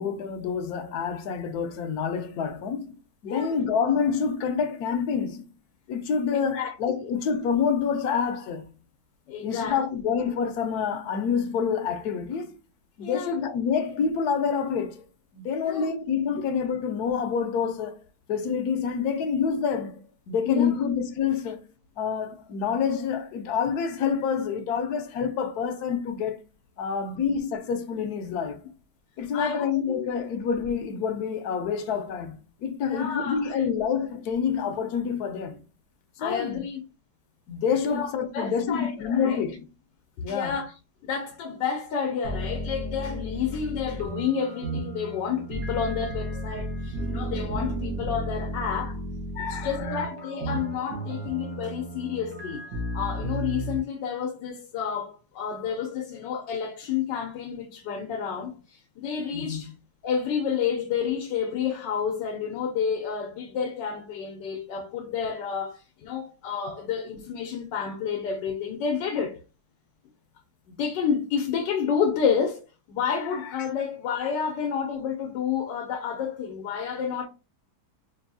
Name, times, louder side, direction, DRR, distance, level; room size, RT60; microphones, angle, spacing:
voice 1, 0.0-5.5 5.9-8.7 9.4-12.5 13.0-15.0 15.3-18.0 18.3-21.6 22.0-26.4 26.8-28.6 29.2-35.6 36.2-36.6 37.5-39.7 40.2-40.5 49.4-50.1 59.3-59.6, left 6 dB, 70° left, 1.1 m, -27 dB
voice 2, 3.2-3.6 6.3-6.7 9.3-9.8 13.0-13.4 15.6-15.9 20.5-20.7 29.2-30.1 32.9-33.6 36.2-36.8 37.8-39.4 40.3-40.7 41.0-49.0 49.5-52.7 52.9-59.7 60.0-69.4 70.7-77.3, left 7 dB, 85° left, 1.4 m, -30 dB
sound 1, 42.2-53.8, right 1 dB, 85° right, 1.8 m, -33 dB
5.2 x 2.7 x 2.6 m
omnidirectional pair, 1.9 m